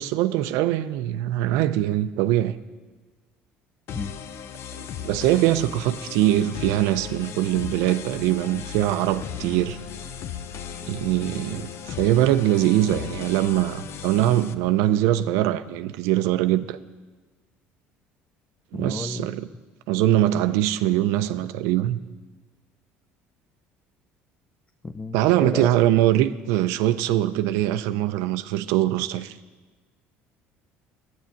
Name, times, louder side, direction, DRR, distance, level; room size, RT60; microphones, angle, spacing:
voice 1, 0.0-2.5 4.7-9.8 10.9-16.8 18.7-19.5 19.9-22.0 25.1-29.3, right 13 dB, 80° right, 0.5 m, -22 dB
sound 1, 3.9-14.5, left 8 dB, 60° left, 0.7 m, -36 dB
voice 2, 18.7-19.3 24.8-25.7, left 3 dB, 20° left, 0.6 m, -32 dB
9.5 x 9.1 x 8.4 m
supercardioid pair, 90°, 5 cm